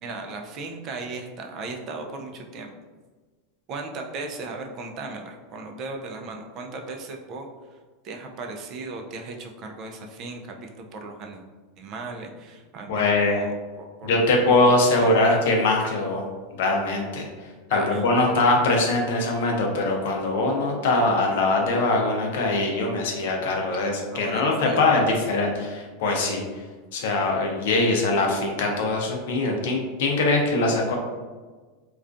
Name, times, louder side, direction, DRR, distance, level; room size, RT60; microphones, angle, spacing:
voice 1, 0.0-2.7 3.7-7.5 8.0-11.4 11.8-14.2 14.6-15.4 17.7-18.3 23.9-25.0, right 3 dB, 45° right, 3 dB, 0.4 m, -37 dB
voice 2, 12.9-13.4 14.0-16.2 16.6-17.2 17.7-26.4 26.9-31.0, left 2 dB, 75° left, 1 dB, 0.6 m, -22 dB
2.4 x 2.2 x 2.5 m, 1.4 s
hypercardioid pair, 105°, 0 cm